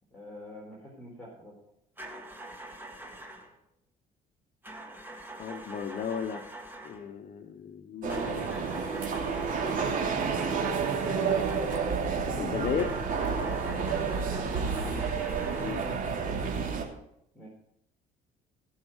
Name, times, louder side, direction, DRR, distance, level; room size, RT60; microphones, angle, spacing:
voice 1, 0.1-1.5 14.6-15.2 17.3-17.5, equal, 5° left, -5 dB, 4.2 m, -46 dB
sound 1, 2.0-3.6 4.6-7.1 8.1-12.1 12.8-16.0, right 1 dB, 10° right, 2.2 m, -44 dB
voice 2, 5.4-6.4 6.8-9.5 12.4-13.0 15.6-15.9, left 7 dB, 50° left, 5 dB, 1.1 m, -36 dB
sound 2, 8.0-16.8, right 5 dB, 50° right, 2.9 m, -30 dB
18.0 x 6.5 x 6.4 m, 0.77 s
cardioid pair, 110°, 17 cm